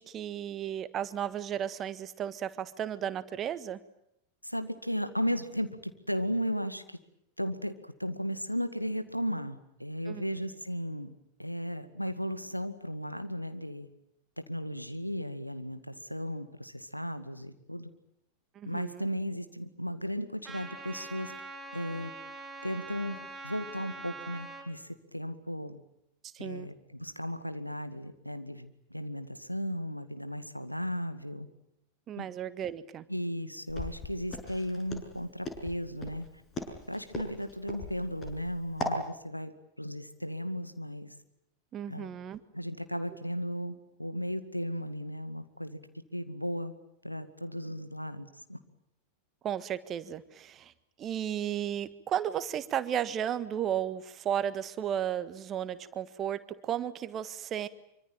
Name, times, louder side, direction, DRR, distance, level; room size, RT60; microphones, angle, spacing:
voice 1, 0.0-3.8 10.1-10.2 18.6-19.1 26.3-26.7 32.1-33.1 41.7-42.4 49.4-50.7 51.0-57.7, right 10 dB, 30° right, 14 dB, 1.6 m, -34 dB
voice 2, 4.4-6.8 7.4-7.7 8.0-11.1 11.4-13.9 14.5-17.9 18.6-21.3 21.7-22.1 22.6-25.8 26.4-31.5 32.2-32.3 33.1-36.3 36.9-41.1 41.9-42.1 42.5-45.8 46.1-46.7 47.0-48.6, equal, 90° left, 10 dB, 2.1 m, -35 dB
Trumpet, 20.4-24.7, right 2 dB, 10° right, 7.3 m, -44 dB
Walk footsteps, 33.7-39.0, left 1 dB, 25° left, 6.9 m, -38 dB
26.0 x 25.0 x 9.2 m, 0.78 s
figure-of-eight pair, 90°, 0 cm